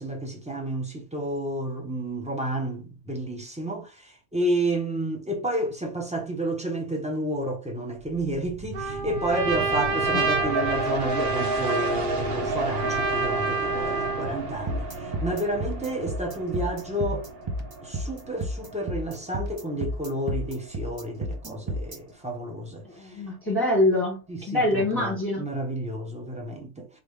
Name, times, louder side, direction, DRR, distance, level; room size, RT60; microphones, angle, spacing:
voice 1, 0.0-17.3 17.8-23.2 24.3-26.9, right 1 dB, 5° right, 0.9 m, -30 dB
sound 1, 8.0-21.3 21.7-21.8, right 2 dB, 45° right, 0.9 m, -33 dB
Trumpet, 8.7-14.4, right 3 dB, 85° right, 1.6 m, -28 dB
sound 2, 14.7-22.0, right 1 dB, 30° right, 0.5 m, -31 dB
voice 2, 22.8-24.2 24.5-25.4, left 1 dB, 15° left, 2.0 m, -25 dB
3.7 x 3.5 x 3.3 m
omnidirectional pair, 1.6 m